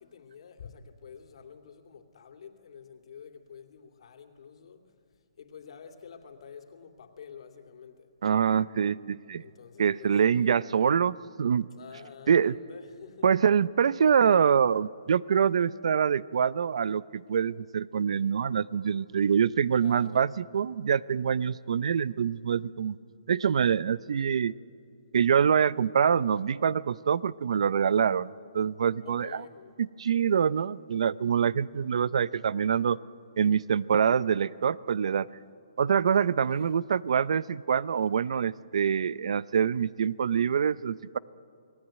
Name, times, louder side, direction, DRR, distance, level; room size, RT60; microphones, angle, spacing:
voice 1, 0.0-4.8 5.4-8.1 9.4-10.6 11.8-13.3 19.8-20.3 29.0-29.8 36.5-36.8, left 7 dB, 65° left, 2.8 m, -48 dB
voice 2, 8.2-9.4 9.8-11.7 12.3-12.5 13.2-22.9 23.3-24.5 25.1-29.4 29.8-33.0 33.4-35.3 35.8-41.2, right 7 dB, 65° right, 0.6 m, -25 dB
28.5 x 19.0 x 9.1 m
hypercardioid pair, 150°, 3 cm